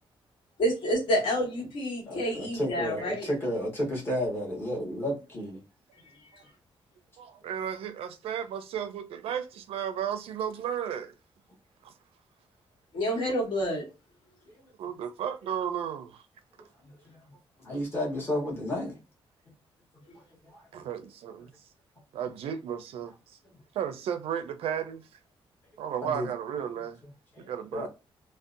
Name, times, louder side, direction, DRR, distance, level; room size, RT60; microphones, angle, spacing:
voice 1, 0.6-3.3 12.9-13.9, equal, 55° left, 1.2 m, -28 dB
voice 2, 2.1-5.6 17.1-17.2 17.6-19.0 20.5-20.6 26.0-26.3 27.3-27.4 27.7-27.9, equal, 25° left, 1.0 m, -32 dB
voice 3, 7.2-11.1 11.8-11.9 14.8-16.2 16.6-16.7 20.7-21.5 22.1-23.4 23.7-25.0 25.8-27.0 27.4-27.9, right 9 dB, 80° right, 0.4 m, -34 dB
2.6 x 2.0 x 2.4 m
wide cardioid pair, 180°, 10 cm